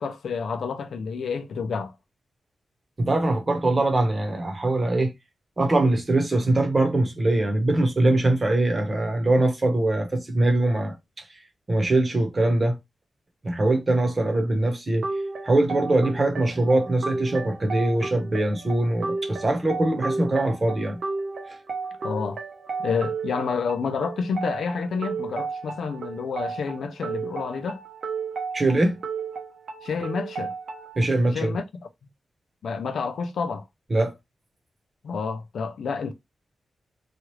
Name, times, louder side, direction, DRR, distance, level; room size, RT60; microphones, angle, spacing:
voice 1, 0.0-1.9 22.0-22.4 22.8-27.8 29.8-30.5 31.3-31.6 32.6-33.6 35.0-36.1, left 5 dB, 80° left, 0.4 m, -29 dB
voice 2, 3.0-5.1 5.6-10.9 11.7-12.8 13.4-15.1 15.4-21.0 21.5-21.6 28.5-29.0 31.0-31.5 33.9-34.1, right 2 dB, 30° right, 0.9 m, -22 dB
sound 1, 15.0-31.0, right 4 dB, 70° right, 0.7 m, -33 dB
3.0 x 2.4 x 3.0 m
wide cardioid pair, 120°, 0 cm